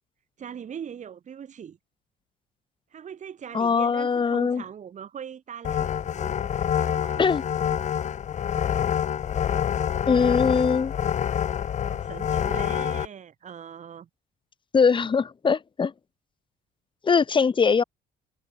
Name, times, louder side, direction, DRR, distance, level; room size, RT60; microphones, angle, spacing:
voice 1, 0.4-1.8 2.9-7.4 11.8-14.1, right 8 dB, 45° right, 7.1 m, -41 dB
voice 2, 3.5-4.6 7.2-7.4 10.1-10.9 14.7-15.9 17.0-17.8, left 5 dB, 30° left, 1.8 m, -21 dB
sound 1, 5.6-13.1, left 9 dB, 45° left, 1.3 m, -27 dB
cardioid pair, 110°, 17 cm